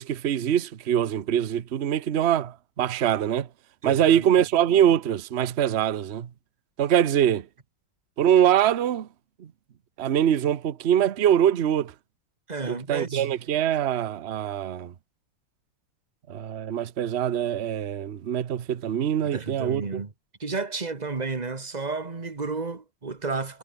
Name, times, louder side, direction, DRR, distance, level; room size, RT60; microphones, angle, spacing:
voice 1, 0.0-3.5 3.8-6.3 6.8-7.5 8.2-9.1 9.4-9.5 10.0-11.9 12.7-14.9 16.3-20.0, right 10 dB, 45° right, 0.9 m, -23 dB
voice 2, 3.8-4.3 12.5-13.3 19.2-20.1 20.4-23.6, right 4 dB, 25° right, 1.4 m, -32 dB
omnidirectional pair, 2.2 m